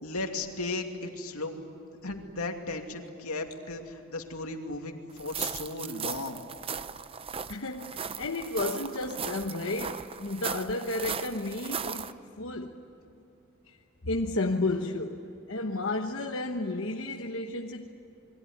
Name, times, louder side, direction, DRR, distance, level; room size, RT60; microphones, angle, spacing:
voice 1, 0.0-1.6 2.0-6.4, left 2 dB, 85° left, 3 dB, 2.6 m, -36 dB
sound 1, 5.2-12.1, right 6 dB, 25° right, 0.6 m, -37 dB
voice 2, 7.5-12.8 13.7-13.8 14.0-17.9, left 2 dB, 60° left, 2 dB, 1.2 m, -32 dB
28.5 x 22.0 x 9.5 m, 2.8 s
head